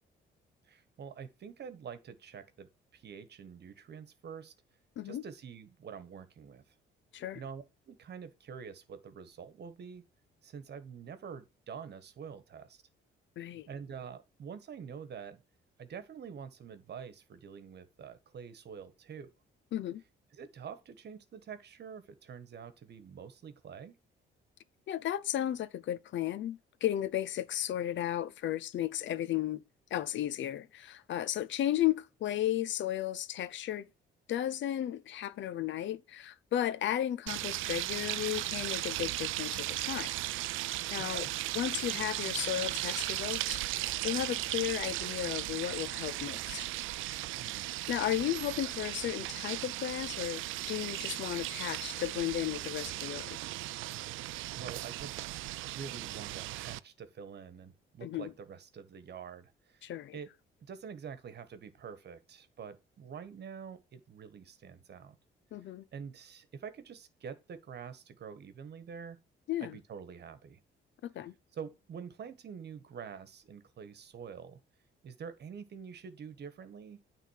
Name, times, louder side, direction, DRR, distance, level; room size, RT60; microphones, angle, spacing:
voice 1, 0.6-4.5 5.0-6.7 7.3-10.0 10.4-12.8 13.7-15.4 15.8-19.3 20.3-24.0 41.1-41.3 47.4-47.7 54.5-60.3 60.6-65.2 65.9-69.2 69.6-70.6 71.5-74.6 75.0-77.0, right 7 dB, 55° right, 1.5 m, -46 dB
voice 2, 13.4-13.7 19.7-20.0 24.9-29.6 29.9-33.9 34.3-40.2 40.6-41.3 41.5-46.7 47.9-53.4 58.0-58.3 59.8-60.2 65.5-65.8 69.5-69.8 71.0-71.3, left 12 dB, 70° left, 0.7 m, -34 dB
sound 1, 37.3-56.8, right 17 dB, 90° right, 0.4 m, -37 dB
9.2 x 3.7 x 6.5 m
cardioid pair, 90°, 20 cm